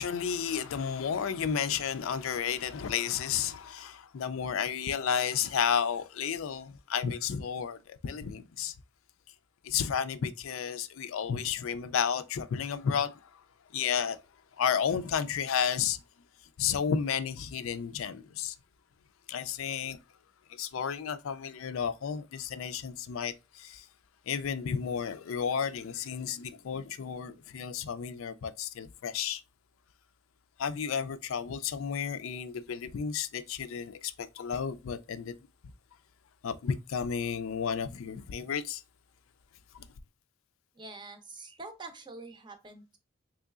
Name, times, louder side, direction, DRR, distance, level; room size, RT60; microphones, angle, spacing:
voice 1, 0.0-8.7 9.6-13.2 13.7-14.2 14.6-16.0 16.6-18.5 19.3-20.0 20.6-23.8 24.3-29.4 30.6-35.3 36.4-38.8 39.7-39.9, left 7 dB, 85° left, 0.4 m, -32 dB
voice 2, 40.7-43.0, right 3 dB, 20° right, 0.5 m, -46 dB
3.7 x 3.1 x 2.3 m
head